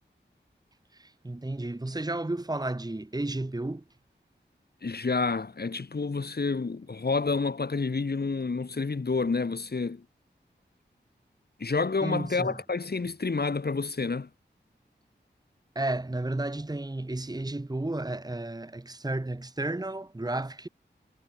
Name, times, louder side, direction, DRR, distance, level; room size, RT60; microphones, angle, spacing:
voice 1, 0.9-3.8 12.0-12.6 15.8-20.7, right 2 dB, 20° right, 1.7 m, -32 dB
voice 2, 4.8-10.0 11.6-14.3, left 4 dB, 60° left, 3.6 m, -29 dB
wide cardioid pair, 80°, 19 cm